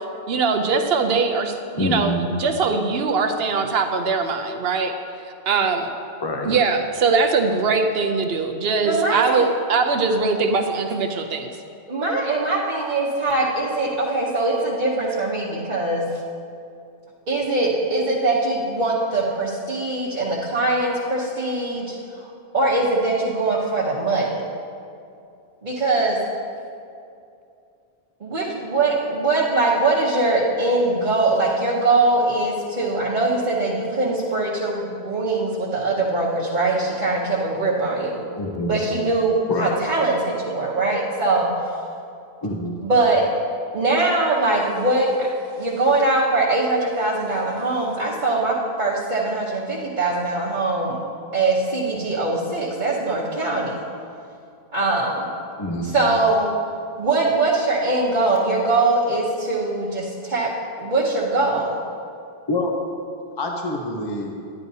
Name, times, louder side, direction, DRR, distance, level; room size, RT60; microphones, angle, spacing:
voice 1, 0.3-4.9 5.5-5.9 6.4-11.5, right 4 dB, 65° right, 6 dB, 0.8 m, -21 dB
voice 2, 1.8-2.2 6.2-6.5 38.3-38.8 39.5-39.8 42.4-42.8 55.6-56.0 62.5-62.7 63.4-64.4, left 1 dB, 30° left, 1 dB, 0.6 m, -26 dB
voice 3, 8.8-9.5 11.9-16.0 17.3-24.4 25.6-26.2 28.2-38.2 38.7-41.8 42.8-43.2 43.7-45.3 45.6-51.0 51.3-53.8 54.7-55.3 55.8-56.5 57.0-60.5 60.8-61.8, right 2 dB, 45° right, -7 dB, 1.1 m, -22 dB
10.5 x 10.5 x 2.7 m, 2.5 s
omnidirectional pair, 1.1 m